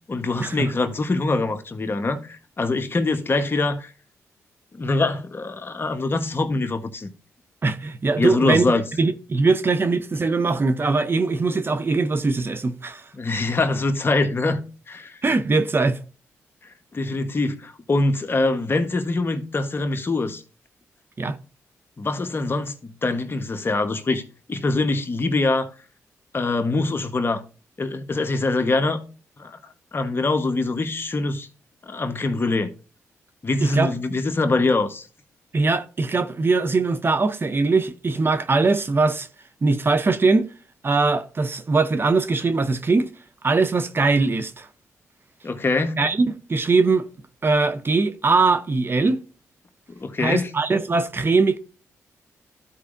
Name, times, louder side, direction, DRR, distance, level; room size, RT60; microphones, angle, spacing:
voice 1, 0.1-3.9 4.7-7.1 8.2-8.8 13.1-14.6 14.9-15.2 16.9-20.4 22.0-24.2 24.5-25.7 26.3-27.4 27.8-29.0 29.4-29.6 29.9-31.5 31.9-32.7 33.4-35.1 45.4-46.0 50.0-50.5, left 3 dB, 40° left, 1.1 m, -23 dB
voice 2, 7.6-8.7 9.0-13.0 15.2-16.0 21.2-21.4 33.6-33.9 35.5-39.3 39.6-40.5 40.8-43.1 43.4-44.7 46.0-47.1 47.4-49.2 50.2-51.6, right 3 dB, 40° right, 0.7 m, -21 dB
13.5 x 4.8 x 2.6 m
cardioid pair, 60°, 6 cm